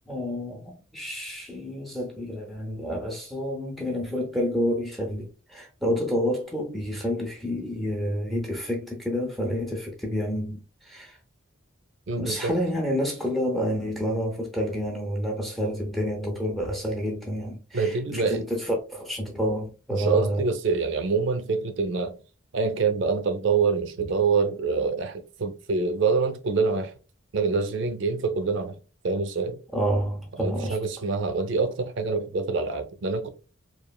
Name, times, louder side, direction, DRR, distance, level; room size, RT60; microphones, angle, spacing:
voice 1, 0.1-11.2 12.2-20.5 29.7-30.8, equal, ahead, 0.5 m, -29 dB
voice 2, 12.1-12.5 17.7-18.4 19.9-22.1 22.5-26.9 27.3-28.8 29.0-29.6 30.4-33.3, right 4 dB, 60° right, 0.4 m, -26 dB
3.0 x 2.4 x 2.2 m
head